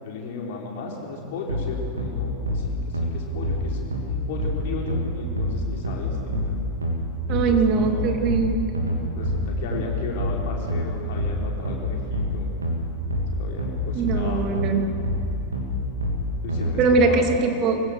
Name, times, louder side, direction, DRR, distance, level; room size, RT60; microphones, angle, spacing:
voice 1, 0.0-6.6 7.3-8.2 9.1-12.5 13.3-14.6 16.4-17.3, left 3 dB, 50° left, -1 dB, 4.5 m, -35 dB
sound 1, 1.5-16.7, left 1 dB, 80° right, 3.2 m, -26 dB
voice 2, 7.3-8.8 13.9-14.9 16.8-17.8, right 4 dB, 35° right, 4 dB, 2.6 m, -21 dB
26.0 x 16.0 x 6.6 m, 2.6 s
figure-of-eight pair, 90°, 0 cm